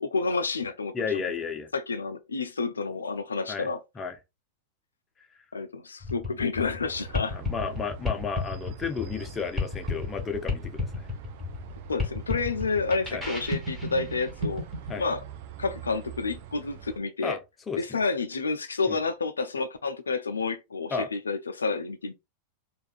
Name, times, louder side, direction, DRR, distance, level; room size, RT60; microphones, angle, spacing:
voice 1, 0.0-1.2 1.7-3.8 5.5-7.4 11.9-14.6 15.0-15.2 15.6-17.4 17.8-22.1, left 4 dB, 75° left, 0.3 m, -29 dB
voice 2, 0.9-1.7 3.5-3.7 4.0-4.2 7.3-11.1 13.1-13.2 14.9-15.0 17.2-17.4 17.7-18.0 18.9-19.0 20.9-21.1, left 5 dB, 20° left, 0.5 m, -32 dB
sound 1, 6.0-14.9, left 3 dB, 5° right, 1.2 m, -33 dB
sound 2, 6.9-17.0, right 7 dB, 50° right, 0.4 m, -44 dB
3.4 x 2.4 x 2.5 m
figure-of-eight pair, 90°, 0 cm